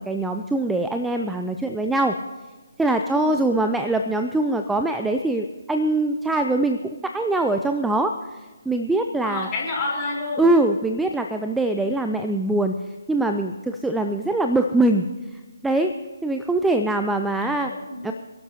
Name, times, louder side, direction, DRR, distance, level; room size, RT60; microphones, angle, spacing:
voice 1, 0.0-2.2 2.8-8.4 8.7-9.5 10.4-12.8 13.1-15.1 15.3-15.9 16.2-17.7 18.0-18.1, right 2 dB, 5° right, 6 dB, 0.4 m, -23 dB
voice 2, 3.1-3.4 9.2-10.5 17.4-18.1, left 3 dB, 20° left, -4 dB, 4.1 m, -29 dB
26.5 x 11.5 x 2.9 m, 1.2 s
figure-of-eight pair, 145°, 0 cm